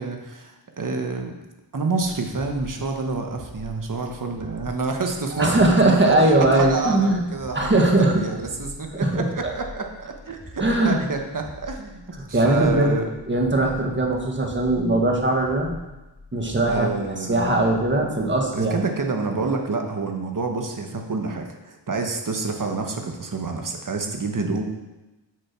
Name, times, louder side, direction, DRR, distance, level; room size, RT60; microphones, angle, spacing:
voice 1, 0.0-1.4 1.7-13.1 16.7-17.5 18.5-24.6, right 3 dB, 45° right, 3 dB, 1.3 m, -28 dB
sound 1, 3.2-16.9, left 1 dB, 10° left, 2.9 m, -43 dB
voice 2, 5.4-7.2 7.5-8.2 8.9-9.3 10.6-11.0 12.3-13.0 13.3-15.7 16.3-16.9 17.3-18.8, right 2 dB, 25° right, 0 dB, 1.7 m, -20 dB
8.3 x 6.5 x 6.1 m, 1.0 s
wide cardioid pair, 105°, 44 cm